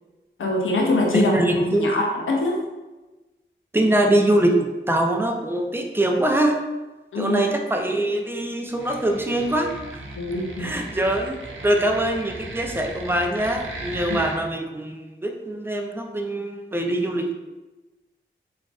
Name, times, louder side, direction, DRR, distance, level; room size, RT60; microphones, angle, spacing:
voice 1, 0.4-1.3 1.7-2.6 7.1-7.5 10.2-10.7 14.1-14.2, left 2 dB, 90° left, 0 dB, 0.5 m, -23 dB
voice 2, 1.1-2.0 3.7-6.6 7.2-10.0 10.6-17.3, right 1 dB, 10° right, 3 dB, 0.4 m, -23 dB
sound 1, 8.7-14.4, right 2 dB, 80° right, 0.5 m, -37 dB
3.7 x 2.4 x 2.3 m, 1.1 s
cardioid pair, 40°, 20 cm